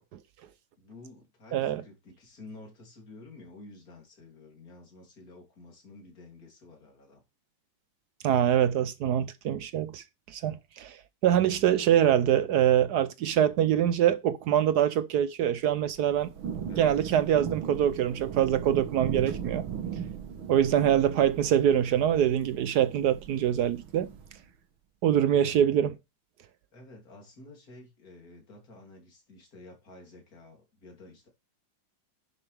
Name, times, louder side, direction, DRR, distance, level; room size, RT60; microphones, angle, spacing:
voice 1, 0.8-7.2 16.7-17.0 26.7-31.3, left 2 dB, 45° left, 3.5 m, -50 dB
voice 2, 1.5-1.8 8.2-16.3 16.8-19.7 20.5-24.1 25.0-26.0, right 10 dB, 70° right, 1.0 m, -24 dB
Thunder / Rain, 15.9-24.4, right 8 dB, 85° right, 2.1 m, -38 dB
11.0 x 6.8 x 3.4 m
omnidirectional pair, 2.2 m